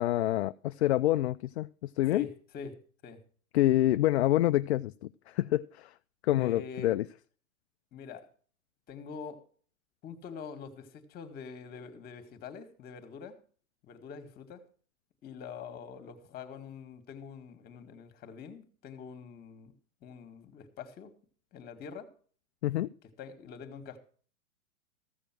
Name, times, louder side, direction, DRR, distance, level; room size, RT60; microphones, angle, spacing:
voice 1, 0.0-2.3 3.5-5.9 6.2-7.1 22.6-22.9, left 14 dB, 55° left, 0.5 m, -27 dB
voice 2, 2.1-3.2 6.3-7.0 7.9-8.3 8.9-9.4 10.0-13.4 13.8-14.6 15.2-19.7 20.0-21.1 21.5-22.1 23.0-24.0, left 6 dB, 20° left, 1.8 m, -45 dB
15.0 x 6.8 x 6.0 m
hypercardioid pair, 140°, 41 cm